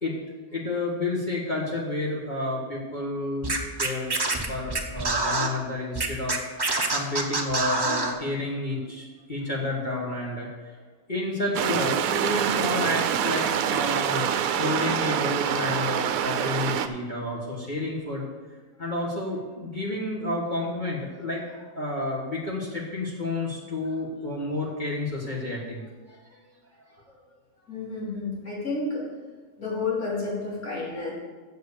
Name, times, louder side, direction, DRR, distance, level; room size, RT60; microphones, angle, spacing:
voice 1, 0.5-4.1 4.5-10.8 11.1-14.3 14.6-18.2 18.8-26.4 27.1-27.2, left 2 dB, 30° left, -4 dB, 1.6 m, -30 dB
Scratching (performance technique), 3.4-5.5 5.9-8.1, right 3 dB, 20° right, 0.6 m, -26 dB
sound 1, 11.5-16.9, right 9 dB, 75° right, 1.0 m, -26 dB
voice 2, 27.7-29.0 29.6-31.1, left 3 dB, 70° left, -6 dB, 3.6 m, -30 dB
7.8 x 7.0 x 6.7 m, 1.4 s
omnidirectional pair, 1.6 m